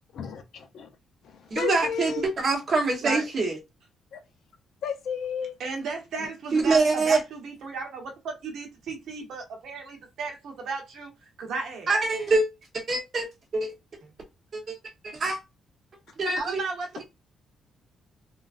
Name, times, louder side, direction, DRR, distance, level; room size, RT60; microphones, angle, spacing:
voice 1, 0.1-0.9 1.5-2.3 4.1-4.2 4.8-5.5, left 7 dB, 60° left, 0.6 m, -32 dB
voice 2, 1.5-3.6 6.5-7.2 11.9-12.4 12.9-13.3 13.5-13.7 14.5-14.7 15.0-15.4 16.2-16.6, right 3 dB, 40° right, 1.0 m, -24 dB
voice 3, 5.6-11.1 11.4-11.9 14.0-14.1 16.4-17.0, right 4 dB, 65° right, 1.1 m, -34 dB
3.6 x 2.4 x 2.5 m
cardioid pair, 165°, 0 cm